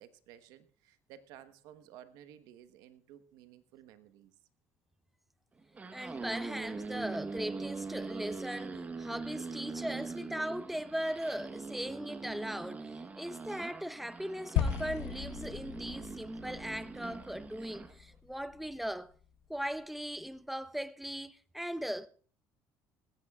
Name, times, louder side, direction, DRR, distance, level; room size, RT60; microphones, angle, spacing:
voice 1, 0.0-4.3 8.7-8.8 9.4-9.5, right 11 dB, 80° right, 1.2 m, -55 dB
sound 1, 5.6-17.9, right 4 dB, 25° right, 1.1 m, -42 dB
voice 2, 5.9-19.1 19.5-22.1, equal, ahead, 0.6 m, -39 dB
sound 2, 14.6-18.9, left 9 dB, 80° left, 1.0 m, -37 dB
20.0 x 16.0 x 2.4 m
cardioid pair, 110°, 6 cm